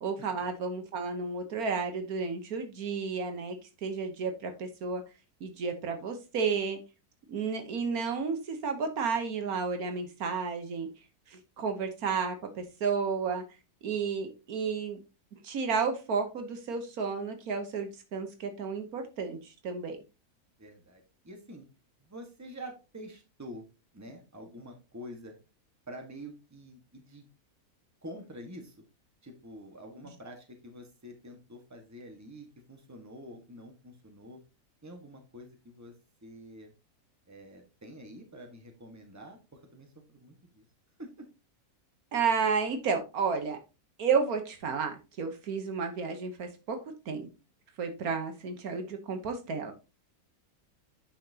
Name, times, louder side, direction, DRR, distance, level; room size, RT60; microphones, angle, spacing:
voice 1, 0.0-3.6 3.8-5.0 5.4-6.8 7.3-10.9 11.3-13.4 13.8-15.0 15.4-20.0 42.1-43.6 44.0-46.8 47.1-47.3 47.8-49.7, right 5 dB, 75° right, 6 dB, 1.5 m, -32 dB
voice 2, 20.6-21.7 22.0-23.7 23.9-25.3 25.9-27.2 28.0-28.8 29.2-34.4 34.8-35.9 36.2-36.7 37.3-40.6 41.0-41.3, equal, 10° right, 3 dB, 1.4 m, -47 dB
8.6 x 5.8 x 2.8 m, 0.29 s
omnidirectional pair, 1.6 m